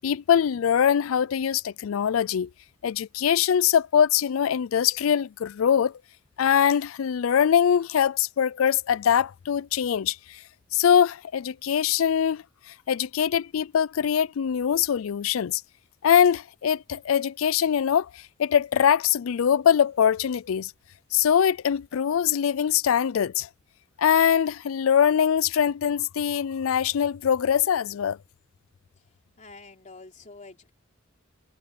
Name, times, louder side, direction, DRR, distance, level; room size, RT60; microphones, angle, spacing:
voice 1, 0.0-2.5 2.8-5.9 6.4-10.4 10.7-12.4 12.9-15.6 16.0-20.7 21.1-23.5 24.0-28.2, left 8 dB, 75° left, 0.4 m, -23 dB
voice 2, 29.4-30.7, left 3 dB, 40° left, 3.3 m, -47 dB
head